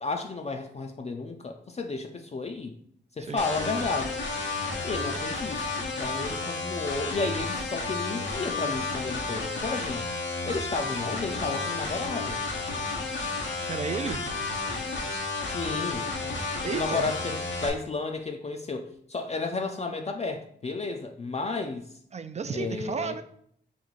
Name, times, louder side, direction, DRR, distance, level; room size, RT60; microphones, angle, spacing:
voice 1, 0.0-2.8 3.2-4.2 4.8-5.7 6.0-10.1 10.5-12.4 15.5-16.1 16.7-21.9 22.5-23.1, left 3 dB, 35° left, 3 dB, 0.4 m, -32 dB
sound 1, 3.4-17.7, left 3 dB, 85° left, 0.7 m, -32 dB
voice 2, 13.7-14.3 16.6-17.1 22.1-23.2, right 5 dB, 35° right, 10 dB, 0.4 m, -32 dB
3.1 x 2.7 x 3.9 m, 0.66 s
cardioid pair, 45°, 19 cm